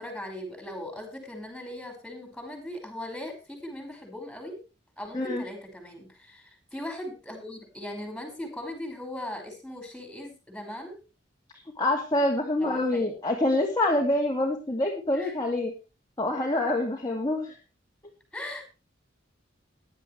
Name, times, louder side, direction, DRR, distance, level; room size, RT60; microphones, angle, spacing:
voice 1, 0.0-4.6 5.0-11.0 12.6-13.1 15.1-15.3 18.3-18.6, left 1 dB, 5° left, 4 dB, 5.5 m, -39 dB
voice 2, 11.8-15.7 16.2-17.6, left 1 dB, 20° left, -1 dB, 2.4 m, -26 dB
17.0 x 11.0 x 3.3 m, 0.31 s
head